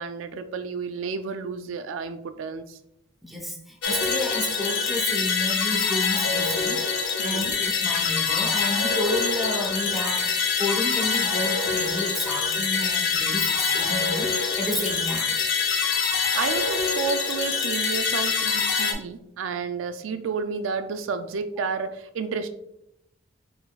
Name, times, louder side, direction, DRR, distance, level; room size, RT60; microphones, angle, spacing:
voice 1, 0.0-2.8 7.2-7.5 16.3-22.5, right 5 dB, 75° right, 10 dB, 0.3 m, -31 dB
voice 2, 3.2-15.3, left 1 dB, ahead, 0 dB, 0.7 m, -31 dB
sound 1, 3.8-18.9, left 5 dB, 65° left, 0.6 m, -25 dB
4.3 x 4.0 x 2.2 m, 0.79 s
head